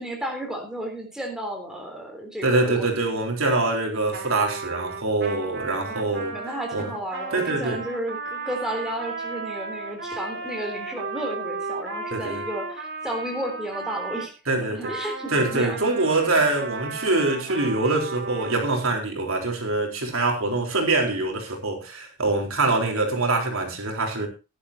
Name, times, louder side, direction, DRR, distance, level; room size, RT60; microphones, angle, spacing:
voice 1, 0.0-2.9 5.8-14.3 14.6-15.8, right 1 dB, 5° right, 3.6 m, -33 dB
voice 2, 2.4-6.4 6.7-6.9 7.3-7.8 12.1-12.4 14.5-14.9 15.3-24.3, right 2 dB, 75° right, 3.8 m, -24 dB
Trumpet, 4.1-14.3 14.8-18.6, right 4 dB, 50° right, 2.9 m, -34 dB
17.0 x 11.0 x 2.8 m
head